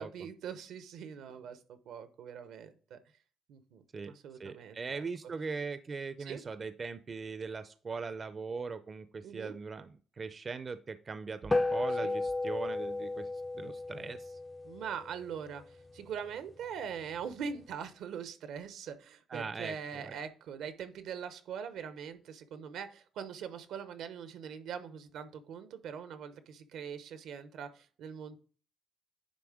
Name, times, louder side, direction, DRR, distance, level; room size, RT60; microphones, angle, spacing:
voice 1, 0.0-3.0 3.5-5.0 6.2-6.4 9.2-9.5 12.0-12.1 14.6-28.4, right 7 dB, 80° right, 11 dB, 0.9 m, -42 dB
voice 2, 4.4-13.3 13.5-14.4 19.3-20.2, right 4 dB, 40° right, 12 dB, 0.5 m, -40 dB
sound 1, 11.5-16.2, left 2 dB, 20° left, 0.4 m, -34 dB
9.6 x 3.4 x 4.9 m, 0.40 s
cardioid pair, 90°, 0 cm